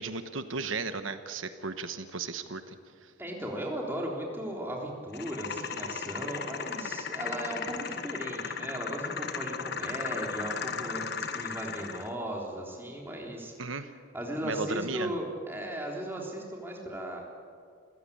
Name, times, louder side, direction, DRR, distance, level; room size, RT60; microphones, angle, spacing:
voice 1, 0.0-2.8 3.0-3.1 13.6-13.9 14.4-15.1, right 4 dB, 90° right, 9 dB, 1.2 m, -35 dB
voice 2, 3.2-13.8 14.1-17.2, right 1 dB, 10° right, -1 dB, 3.7 m, -37 dB
sound 1, 5.1-12.1, left 5 dB, 55° left, 1.3 m, -36 dB
27.0 x 16.0 x 8.7 m, 2.2 s
head